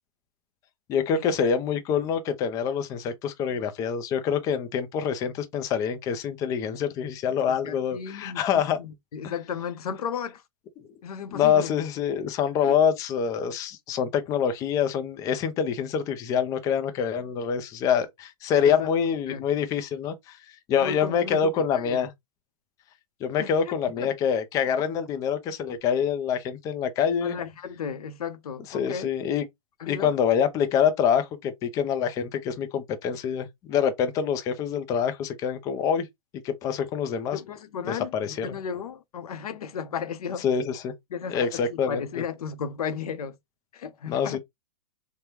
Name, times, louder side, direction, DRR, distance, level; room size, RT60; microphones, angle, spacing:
voice 1, 0.9-8.8 11.3-20.4 20.7-22.1 23.2-27.4 28.7-29.4 29.9-36.1 36.4-37.4 37.9-38.5 40.4-40.9 41.3-42.2 44.1-44.4, left 7 dB, 20° left, 0.4 m, -26 dB
voice 2, 7.5-10.4 11.0-11.7 12.7-12.8 18.6-18.9 19.3-19.4 20.8-22.1 23.4-23.5 24.0-24.1 27.2-29.1 29.8-30.1 37.3-40.4 41.1-43.4 43.7-44.4, left 7 dB, 90° left, 0.7 m, -34 dB
3.4 x 2.1 x 2.9 m
hypercardioid pair, 150°, 19 cm